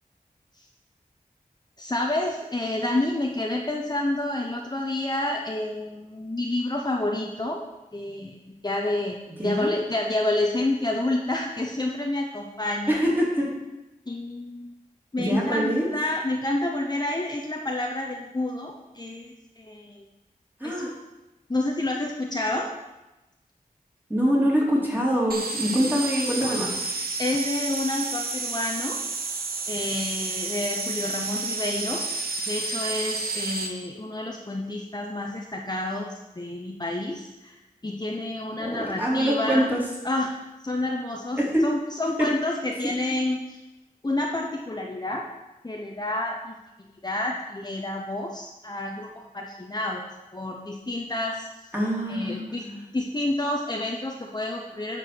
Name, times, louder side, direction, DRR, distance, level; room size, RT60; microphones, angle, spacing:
voice 1, 1.8-7.6 7.9-13.0 14.1-14.7 15.1-20.0 20.6-20.9 21.5-22.7 27.2-29.0 29.7-32.1 32.5-39.7 40.0-40.3 40.6-43.6 44.0-45.3 45.6-46.5 47.0-51.7 52.1-52.7 52.9-55.0, left 2 dB, 25° left, 0 dB, 0.8 m, -29 dB
voice 2, 9.4-9.7 12.9-13.5 15.2-15.9 20.6-20.9 24.1-26.7 38.6-39.8 41.4-41.5 51.7-52.8, equal, 15° right, -5 dB, 3.3 m, -24 dB
sound 1, 25.3-33.7, right 3 dB, 85° right, 1.1 m, -30 dB
9.6 x 4.8 x 6.9 m, 1.0 s
wide cardioid pair, 75°, 15 cm